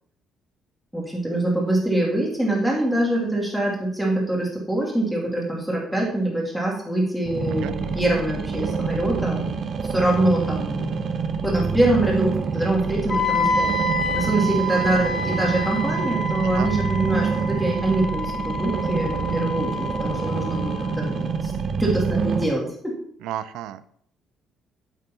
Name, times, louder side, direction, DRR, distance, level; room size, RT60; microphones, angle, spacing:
voice 1, 0.9-9.6 9.9-10.9 11.4-13.7 14.1-21.5 21.8-23.0, right 1 dB, ahead, -3 dB, 2.3 m, -24 dB
sound 1, 7.3-22.4, right 5 dB, 40° right, 0.8 m, -27 dB
Wind instrument woodwind instrument, 13.1-21.0, left 1 dB, 25° left, 0.9 m, -28 dB
voice 2, 23.2-23.8, right 11 dB, 85° right, 14 dB, 0.4 m, -32 dB
8.9 x 8.1 x 2.8 m, 0.65 s
cardioid pair, 150°, 0 cm